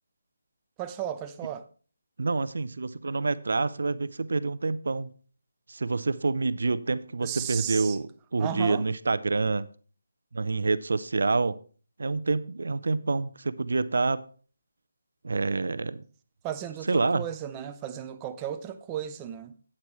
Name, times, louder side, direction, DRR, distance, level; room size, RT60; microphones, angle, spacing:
voice 1, 0.8-1.6 7.2-8.0 8.4-8.8 16.4-19.5, right 10 dB, 15° right, 0.5 m, -35 dB
voice 2, 2.2-5.1 5.7-9.7 10.3-11.6 12.0-14.2 15.2-16.0 16.8-17.2, right 3 dB, 70° right, 0.6 m, -27 dB
12.0 x 8.9 x 3.1 m
figure-of-eight pair, 165°, 0 cm